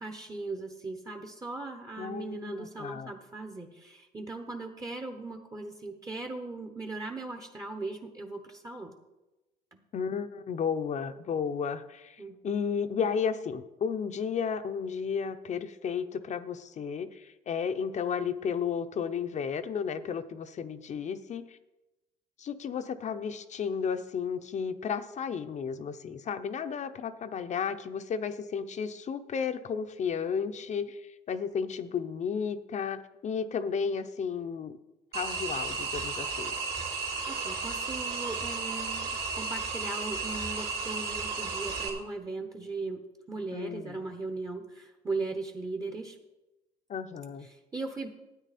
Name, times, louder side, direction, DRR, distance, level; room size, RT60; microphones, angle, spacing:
voice 1, 0.0-8.9 12.2-12.6 37.3-43.0 43.3-46.2 47.5-48.1, right 3 dB, 20° right, 5 dB, 1.0 m, -38 dB
voice 2, 2.0-3.1 9.9-21.6 22.4-34.8 35.1-36.6 43.5-44.0 46.9-47.5, left 6 dB, 45° left, 10 dB, 0.7 m, -33 dB
sound 1, 35.1-41.9, right 4 dB, 70° right, 3.1 m, -34 dB
13.0 x 9.0 x 4.2 m, 1.0 s
cardioid pair, 110°, 17 cm